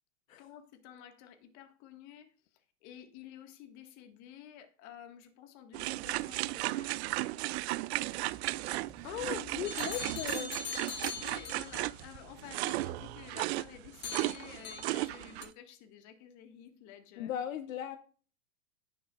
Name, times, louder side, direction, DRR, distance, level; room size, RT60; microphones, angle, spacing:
voice 1, 0.4-7.1 10.9-17.3, left 10 dB, 45° left, 1.8 m, -52 dB
sound 1, 5.7-15.5, right 19 dB, 55° right, 0.5 m, -35 dB
Motorcycle, 8.1-14.2, right 1 dB, 15° right, 3.4 m, -59 dB
voice 2, 9.0-10.5 17.2-18.0, left 10 dB, 75° left, 1.0 m, -37 dB
sound 2, 9.6-11.8 14.0-15.1 15.4-15.5, left 6 dB, 25° left, 2.0 m, -41 dB
17.5 x 7.0 x 2.5 m
hypercardioid pair, 120°, 40 cm